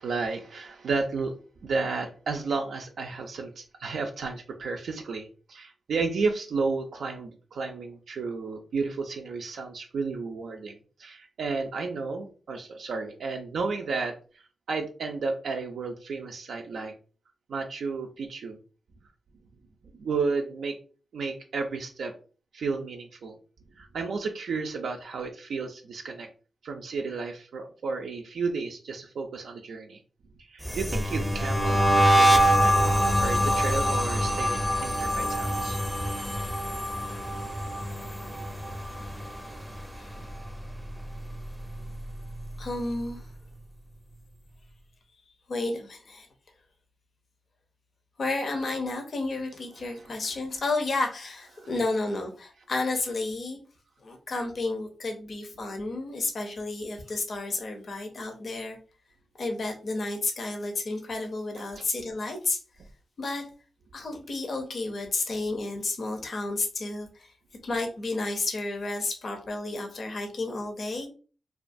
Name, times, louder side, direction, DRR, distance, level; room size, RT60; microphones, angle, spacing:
voice 1, 0.0-1.3 1.6-14.4 14.7-16.9 17.5-18.6 19.9-20.8 21.1-22.1 22.5-23.3 23.8-26.3 26.6-30.0 30.5-32.6 33.2-35.8 51.6-51.7 61.7-61.8, right 4 dB, 75° right, 3 dB, 0.3 m, -32 dB
sound 1, 30.6-39.8 40.1-40.5 40.8-42.4, equal, ahead, 0.5 m, -25 dB
voice 2, 42.6-43.3 45.5-46.3 48.2-53.6 54.0-58.8 59.4-62.6 63.2-63.5 63.9-67.3 67.6-71.1, left 2 dB, 60° left, 3 dB, 0.5 m, -31 dB
2.4 x 2.2 x 2.5 m, 0.37 s
supercardioid pair, 40°, 0 cm